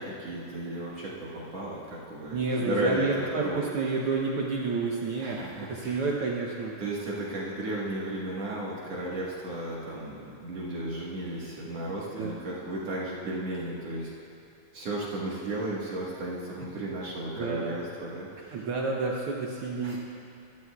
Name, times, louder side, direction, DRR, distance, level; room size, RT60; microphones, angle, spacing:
voice 1, 0.0-3.6 5.2-6.0 6.8-14.1 14.7-18.5 19.8-20.0, right 1 dB, 55° right, -6 dB, 2.4 m, -34 dB
voice 2, 2.3-6.7 12.1-12.4 17.4-17.7 18.5-20.0, right 4 dB, 80° right, -2 dB, 1.2 m, -30 dB
22.5 x 13.0 x 2.3 m, 2.6 s
omnidirectional pair, 3.6 m